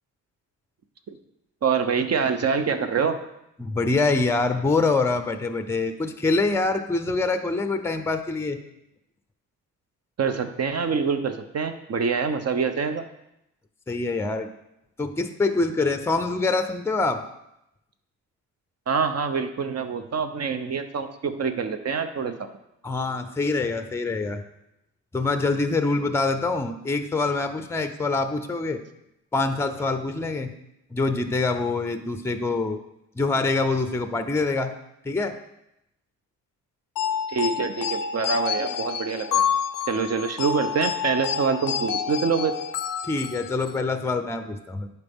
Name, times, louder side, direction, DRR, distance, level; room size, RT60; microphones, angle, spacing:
voice 1, 1.6-3.2 10.2-13.0 18.9-22.5 37.3-39.4 39.9-42.5, right 5 dB, 45° right, 8 dB, 0.8 m, -25 dB
voice 2, 3.6-8.6 13.9-14.5 15.0-17.2 22.8-24.4 25.1-28.8 29.3-30.5 30.9-32.8 33.2-34.7 35.0-35.4 43.0-44.9, left 3 dB, 5° left, 9 dB, 0.5 m, -25 dB
sound 1, 37.0-43.8, left 7 dB, 65° left, 0.5 m, -28 dB
11.0 x 4.2 x 3.6 m, 0.83 s
cardioid pair, 85°, 35 cm